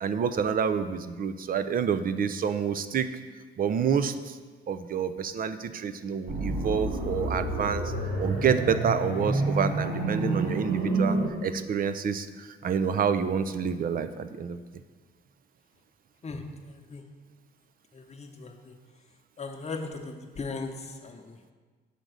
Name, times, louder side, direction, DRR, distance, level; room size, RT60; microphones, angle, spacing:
voice 1, 0.0-3.1 3.6-4.4 4.7-7.9 8.2-14.6, right 7 dB, 45° right, 11 dB, 0.5 m, -28 dB
sound 1, 6.3-11.3, right 2 dB, 70° right, 1.7 m, -28 dB
voice 2, 16.2-17.0 17.9-18.7 19.4-21.5, left 3 dB, 35° left, 4 dB, 0.9 m, -38 dB
6.6 x 3.8 x 6.3 m, 1.4 s
cardioid pair, 90°, 20 cm